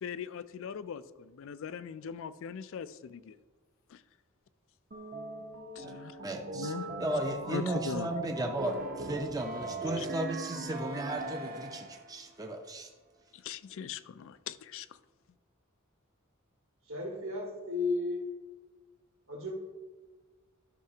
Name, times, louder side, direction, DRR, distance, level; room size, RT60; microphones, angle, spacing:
voice 1, 0.0-3.4 3.9-4.0 5.8-6.2 6.5-6.9 7.5-8.1 10.0-10.1 13.3-15.0, left 7 dB, 65° left, 14 dB, 0.4 m, -40 dB
sound 1, 4.9-12.2, right 2 dB, 45° right, 0.8 m, -40 dB
voice 2, 6.2-6.7 7.0-12.9, right 1 dB, 15° right, 3 dB, 0.5 m, -35 dB
voice 3, 16.9-18.2 19.3-19.5, left 3 dB, 65° right, 0 dB, 2.0 m, -33 dB
12.5 x 5.8 x 2.8 m, 1.3 s
head